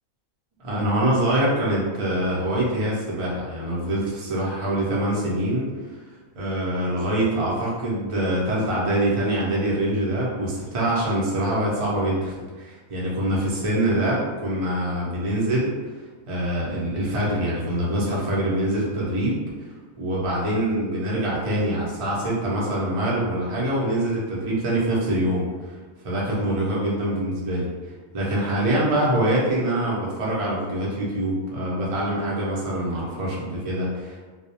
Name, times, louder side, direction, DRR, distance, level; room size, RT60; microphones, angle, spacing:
voice 1, 0.6-5.7 6.3-15.7 16.3-19.4 20.0-25.5 26.0-27.7 28.1-34.3, right 1 dB, 45° right, -6 dB, 0.4 m, -24 dB
2.3 x 2.0 x 2.7 m, 1.4 s
omnidirectional pair, 1.4 m